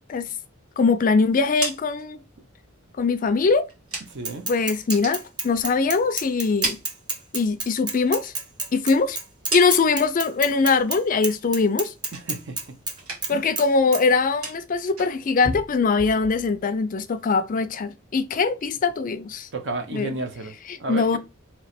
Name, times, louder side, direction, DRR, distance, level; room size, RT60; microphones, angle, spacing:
voice 1, 0.8-2.2 3.0-3.7 4.5-6.8 7.3-8.3 8.7-9.2 9.5-11.9 13.3-19.5 19.9-20.1 20.7-21.2, left 4 dB, 40° left, 0.4 m, -22 dB
sound 1, 1.3-4.4 4.7-6.0 6.3-7.7 8.0-10.1 10.5-11.0 11.3-12.6 12.9-13.5 13.8-16.6, right 2 dB, 85° right, 1.6 m, -36 dB
voice 2, 4.1-4.5 12.1-12.6 13.3-13.5 19.5-20.5 20.8-21.2, right 2 dB, 60° right, 0.8 m, -32 dB
Bicycle / Mechanisms, 4.3-11.0 11.2-13.0 13.2-13.7 13.9-14.0, right 3 dB, 20° right, 0.7 m, -29 dB
3.0 x 2.9 x 4.3 m
head